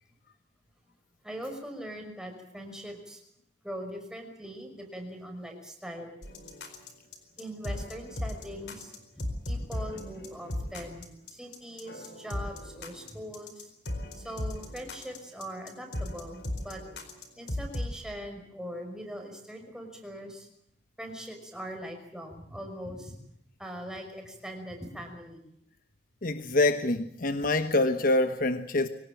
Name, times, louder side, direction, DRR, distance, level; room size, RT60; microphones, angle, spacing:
voice 1, 1.2-3.2 3.6-6.2 7.4-13.7 14.2-16.8 17.4-20.5 21.0-23.2 23.6-25.5, equal, 5° right, 3 dB, 5.7 m, -41 dB
sound 1, 6.2-18.0, left 1 dB, 70° left, 4.4 m, -37 dB
voice 2, 26.2-28.9, left 2 dB, 55° left, 9 dB, 1.2 m, -25 dB
24.5 x 18.5 x 9.1 m, 0.72 s
head